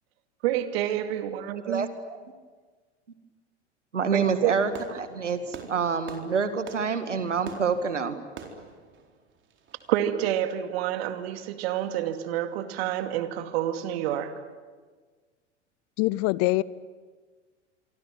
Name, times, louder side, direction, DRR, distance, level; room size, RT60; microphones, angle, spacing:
voice 1, 0.4-1.9 4.1-4.6 9.9-14.4, right 12 dB, 60° right, 8 dB, 2.5 m, -28 dB
voice 2, 3.9-4.7 5.0-8.2, right 6 dB, 80° right, 10 dB, 2.3 m, -27 dB
Fireworks, 4.4-10.0, right 5 dB, 30° right, 4.3 m, -46 dB
voice 3, 16.0-16.6, left 21 dB, 40° left, 22 dB, 0.7 m, -23 dB
25.0 x 25.0 x 9.2 m, 1.5 s
figure-of-eight pair, 85°, 35 cm